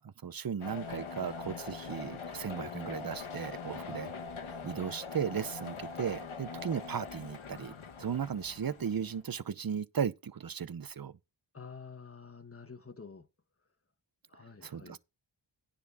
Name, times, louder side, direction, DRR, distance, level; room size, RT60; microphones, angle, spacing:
voice 1, 0.0-4.1 4.6-7.7 8.0-11.2 14.6-15.0, right 7 dB, 45° right, 0.8 m, -36 dB
sound 1, 0.6-9.2, left 5 dB, 85° left, 1.3 m, -43 dB
voice 2, 11.5-13.3 14.3-15.0, left 5 dB, 30° left, 1.3 m, -49 dB
10.0 x 4.2 x 6.8 m
wide cardioid pair, 50°, 48 cm